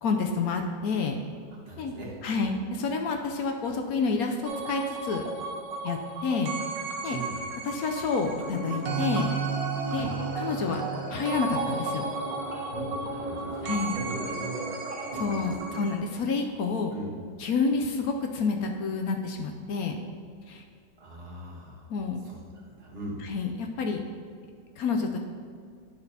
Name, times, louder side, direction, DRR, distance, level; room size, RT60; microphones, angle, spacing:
voice 1, 0.0-1.2 1.8-1.9 2.2-5.2 5.8-6.5 7.0-7.2 7.7-9.3 9.9-10.8 11.1-12.0 13.6-13.9 15.2-16.9 17.4-20.0 20.5-20.6 21.9-22.2 23.2-24.0 24.8-25.2, left 4 dB, 70° left, 4 dB, 0.9 m, -29 dB
voice 2, 1.7-2.5 7.1-7.4 9.8-10.1 12.9-14.7 15.1-15.7 16.9-17.1 21.0-21.9 22.2-23.2, right 2 dB, 35° right, -3 dB, 1.4 m, -41 dB
sound 1, 4.4-16.0, right 4 dB, 90° right, 1.5 m, -34 dB
sound 2, 8.5-15.5, right 1 dB, 20° right, 1.6 m, -38 dB
9.9 x 6.1 x 2.8 m, 2.2 s
omnidirectional pair, 1.9 m